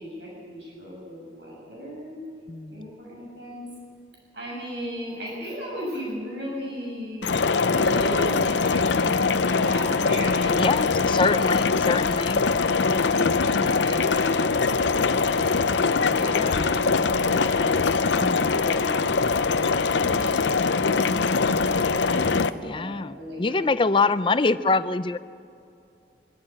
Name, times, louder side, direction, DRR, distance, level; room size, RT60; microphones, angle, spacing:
voice 1, 0.0-2.2 2.7-3.6 4.3-7.3 7.7-10.9 11.2-11.7 12.8-17.9 18.5-23.7 24.3-24.5, equal, 70° right, -3 dB, 7.3 m, -36 dB
voice 2, 2.5-2.9 10.5-12.4 15.7-15.8 16.2-16.6 18.2-18.6 22.5-25.2, left 3 dB, 30° left, 13 dB, 0.5 m, -25 dB
sound 1, 7.2-22.5, left 4 dB, 80° left, 0.7 m, -22 dB
Crowd Ambience, 14.6-21.9, right 1 dB, 90° right, 3.7 m, -51 dB
24.0 x 13.5 x 8.7 m, 2.5 s
head